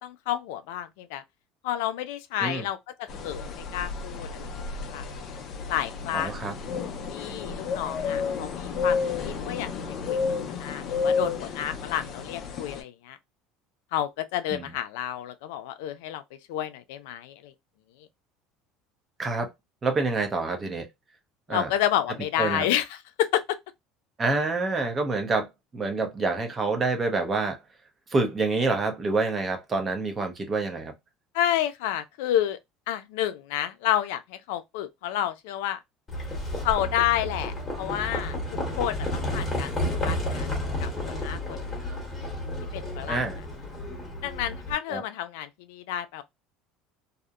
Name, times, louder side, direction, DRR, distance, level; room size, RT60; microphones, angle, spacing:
voice 1, 0.0-1.2 1.6-5.0 5.7-6.5 7.1-9.7 10.1-10.2 10.6-13.2 13.9-16.2 16.5-17.5 21.5-23.6 31.3-32.6 32.9-35.8 36.6-38.3 38.8-39.7 40.0-40.5 40.8-41.7 42.7-43.2 44.2-46.2, left 11 dB, 90° left, 0.4 m, -30 dB
sound 1, 3.1-12.8, left 5 dB, 40° left, 0.5 m, -31 dB
voice 2, 6.1-6.5 14.5-14.7 19.2-19.5 19.8-20.9 21.5-21.7 22.4-22.7 24.2-25.5 25.7-27.6 28.1-30.9 43.1-43.4 44.9-45.0, right 3 dB, 20° right, 0.6 m, -27 dB
Livestock farm animals working animals, 36.1-44.7, left 1 dB, 15° left, 1.1 m, -31 dB
2.7 x 2.0 x 2.3 m
cardioid pair, 160°, 0 cm